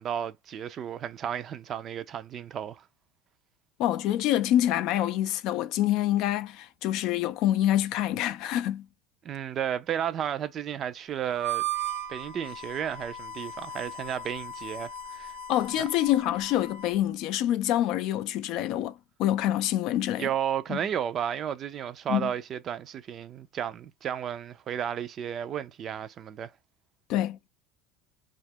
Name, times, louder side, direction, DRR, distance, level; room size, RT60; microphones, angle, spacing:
voice 1, 0.0-2.8 9.2-11.6 12.1-15.4 20.2-26.5, right 9 dB, 45° right, 0.4 m, -33 dB
voice 2, 3.8-8.8 15.5-20.3 20.7-20.8 22.1-22.3 27.1-27.4, left 12 dB, 60° left, 0.3 m, -26 dB
Harmonica, 11.3-17.0, right 5 dB, 80° right, 0.6 m, -37 dB
2.3 x 2.0 x 3.4 m
supercardioid pair, 100°, 0 cm